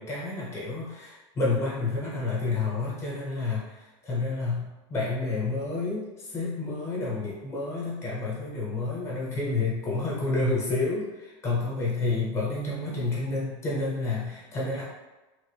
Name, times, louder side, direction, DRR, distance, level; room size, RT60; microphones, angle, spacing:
voice 1, 0.0-3.8 4.0-14.8, left 3 dB, 15° left, -6 dB, 0.8 m, -29 dB
3.1 x 2.5 x 3.2 m, 1.1 s
supercardioid pair, 170°, 16 cm